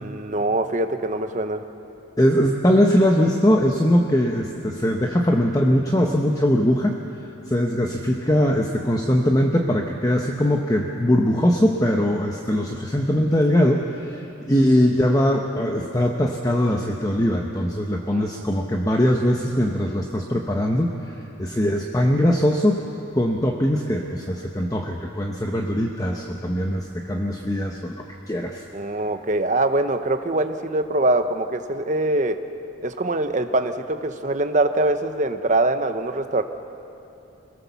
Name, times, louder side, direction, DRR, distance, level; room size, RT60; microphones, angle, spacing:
voice 1, 0.0-1.6 18.1-18.5 28.7-32.4 32.8-36.4, right 2 dB, 35° right, 8 dB, 0.9 m, -23 dB
voice 2, 2.2-7.0 7.5-20.9 21.4-22.8 23.1-28.6, equal, 15° left, 1 dB, 0.9 m, -21 dB
26.0 x 17.5 x 7.1 m, 2.9 s
head